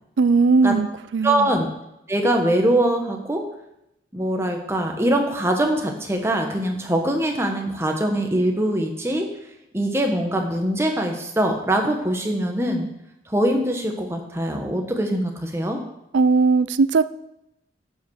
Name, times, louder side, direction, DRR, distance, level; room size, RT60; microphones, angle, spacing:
voice 1, 0.2-1.5 16.1-17.0, right 4 dB, 80° right, 16 dB, 0.4 m, -18 dB
voice 2, 1.2-1.7 2.1-3.4 4.1-9.3 9.7-12.9 13.3-15.8, right 1 dB, 15° right, 2 dB, 1.2 m, -22 dB
11.5 x 5.2 x 6.5 m, 0.85 s
head